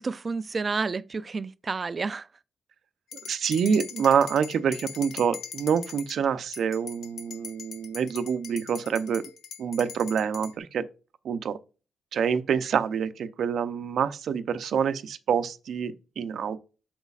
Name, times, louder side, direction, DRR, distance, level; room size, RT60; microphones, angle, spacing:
voice 1, 0.0-2.3, right 4 dB, 30° right, 0.3 m, -30 dB
sound 1, 3.1-6.2 6.5-10.5, left 6 dB, 70° left, 0.8 m, -41 dB
voice 2, 3.3-9.2 9.6-10.8 11.2-11.6 12.1-16.6, right 7 dB, 65° right, 0.6 m, -26 dB
8.1 x 6.1 x 2.4 m
cardioid pair, 135°, 0 cm